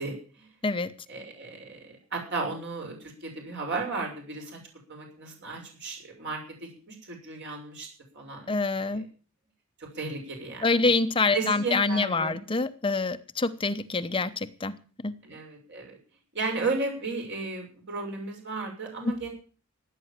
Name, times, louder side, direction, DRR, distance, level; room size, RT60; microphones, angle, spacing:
voice 1, 0.0-0.6 1.1-4.6 4.9-7.9 8.1-9.1 9.8-10.9 11.3-12.4 15.2-16.0 16.3-19.3, right 3 dB, 60° right, 1 dB, 6.4 m, -34 dB
voice 2, 8.5-9.0 10.6-14.8 15.0-15.1, left 3 dB, 25° left, 10 dB, 0.8 m, -26 dB
16.0 x 9.1 x 7.4 m, 0.40 s
head